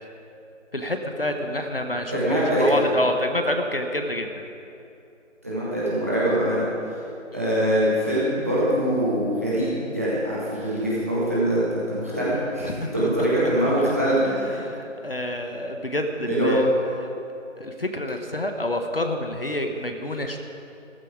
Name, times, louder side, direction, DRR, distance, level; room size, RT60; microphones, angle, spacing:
voice 1, 0.7-4.4 13.0-13.1 13.8-13.9 14.2-16.7 17.6-20.4, left 1 dB, 45° left, 5 dB, 1.2 m, -28 dB
voice 2, 2.1-2.8 5.4-6.6 7.3-14.6 16.3-16.6, right 1 dB, 10° right, -9 dB, 1.5 m, -23 dB
15.5 x 14.5 x 4.9 m, 2.7 s
figure-of-eight pair, 170°, 38 cm